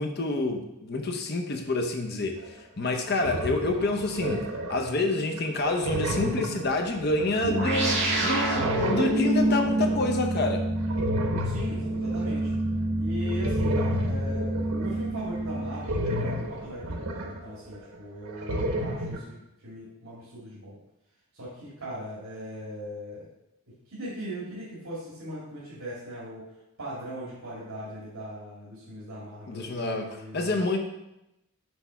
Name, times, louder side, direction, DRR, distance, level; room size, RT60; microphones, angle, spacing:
voice 1, 0.0-2.4 2.8-4.4 4.7-10.6 29.5-30.1 30.3-30.8, left 2 dB, 45° left, 4 dB, 0.7 m, -28 dB
sound 1, 2.4-2.5 2.9-4.9 5.4-8.1 8.3-10.1 10.8-12.6 13.3-17.9 18.2-19.2, equal, 85° right, 1.0 m, -32 dB
sound 2, 7.4-16.2, right 1 dB, 50° right, 1.8 m, -27 dB
voice 2, 11.4-12.5 13.0-20.8 21.3-23.3 23.9-26.5 26.8-30.6, equal, 70° right, -8 dB, 2.2 m, -39 dB
6.2 x 3.4 x 5.6 m, 0.89 s
head